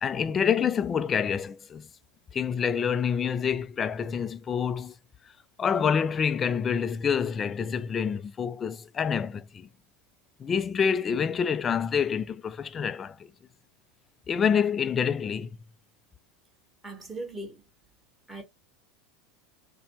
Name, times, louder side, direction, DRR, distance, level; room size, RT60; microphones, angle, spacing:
voice 1, 0.0-1.9 2.3-4.9 5.6-9.7 10.4-13.3 14.3-15.6, left 7 dB, 25° left, 0.4 m, -27 dB
voice 2, 16.8-17.6 18.3-18.4, right 2 dB, 10° right, 1.5 m, -38 dB
4.0 x 2.2 x 3.0 m
figure-of-eight pair, 75°, 0 cm